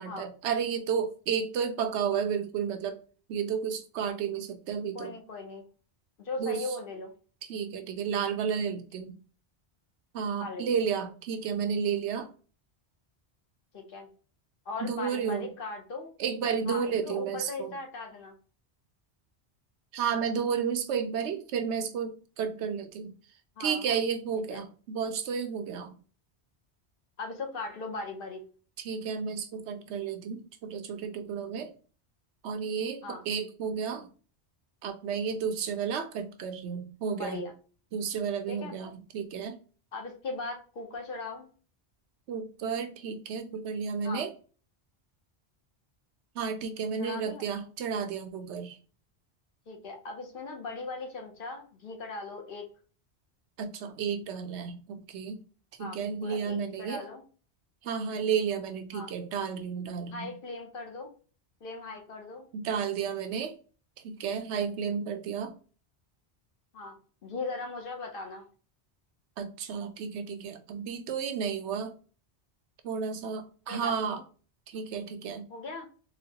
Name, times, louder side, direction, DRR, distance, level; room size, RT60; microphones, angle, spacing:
voice 1, 0.0-3.0 3.3-5.1 6.4-6.7 7.5-9.2 10.1-12.3 14.8-15.5 16.2-17.7 19.9-23.1 23.6-25.9 28.8-31.7 32.4-34.1 34.8-37.4 37.9-39.6 42.3-44.3 46.4-48.8 53.6-55.4 55.8-57.0 57.8-60.3 62.5-63.6 64.0-65.5 69.4-72.0 72.8-74.2 74.7-75.5, right 7 dB, 90° right, 0.9 m, -32 dB
voice 2, 4.9-5.6 6.2-7.1 10.4-10.7 13.7-14.1 14.7-16.1 16.7-18.3 23.6-24.0 24.5-24.6 27.2-28.4 33.0-33.2 37.0-37.5 38.5-38.8 39.9-41.5 44.0-44.2 47.0-47.4 49.7-52.7 55.8-57.2 58.9-59.1 60.1-61.1 61.6-62.5 66.7-68.4 73.7-74.2 75.5-75.9, left 3 dB, 60° left, 0.9 m, -39 dB
4.0 x 2.0 x 2.7 m
omnidirectional pair, 1.1 m